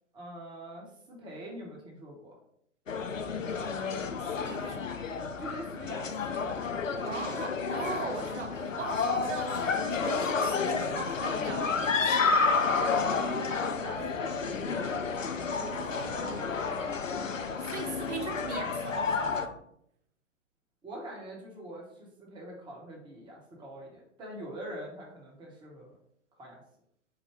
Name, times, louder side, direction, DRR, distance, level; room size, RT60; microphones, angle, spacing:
voice 1, 0.1-2.4 5.4-6.4 13.1-15.0 20.8-25.9 26.4-26.6, right 1 dB, 10° right, -2 dB, 0.9 m, -43 dB
sound 1, 2.9-19.5, left 5 dB, 90° left, 0.5 m, -30 dB
voice 2, 3.3-3.9 4.3-5.0 7.0-12.3 15.6-16.6 17.4-19.6, right 4 dB, 70° right, 3 dB, 0.8 m, -40 dB
4.6 x 2.2 x 4.6 m, 0.71 s
figure-of-eight pair, 110°, 37 cm